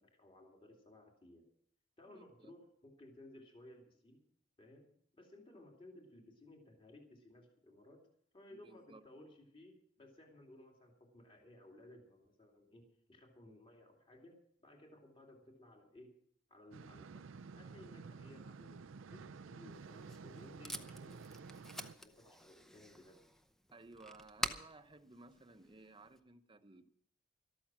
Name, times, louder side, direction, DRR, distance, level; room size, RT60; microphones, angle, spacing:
voice 1, 0.0-1.4 2.0-4.2 4.6-8.0 8.3-16.1 16.5-18.8 19.1-21.2 21.7-23.2, left 1 dB, 30° left, 1 dB, 2.6 m, -59 dB
voice 2, 2.1-2.5 8.5-9.0 23.7-26.9, right 2 dB, 25° right, 9 dB, 0.9 m, -58 dB
sound 1, 16.7-21.9, right 4 dB, 80° right, 0.5 m, -51 dB
Packing tape duct tape, 19.7-26.2, equal, ahead, 0.7 m, -47 dB
13.5 x 13.0 x 6.1 m, 0.67 s
head